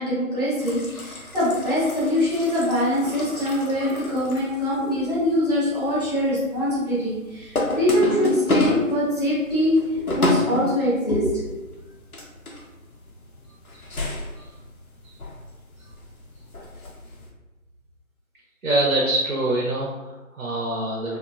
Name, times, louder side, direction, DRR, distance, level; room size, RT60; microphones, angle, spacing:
voice 1, 0.0-11.6, left 1 dB, 30° left, -12 dB, 0.9 m, -23 dB
sound 1, 0.6-17.3, left 1 dB, 85° left, 0.8 m, -31 dB
voice 2, 18.6-21.2, right 2 dB, 80° right, -4 dB, 0.7 m, -25 dB
2.9 x 2.1 x 2.4 m, 1.1 s
figure-of-eight pair, 170°, 42 cm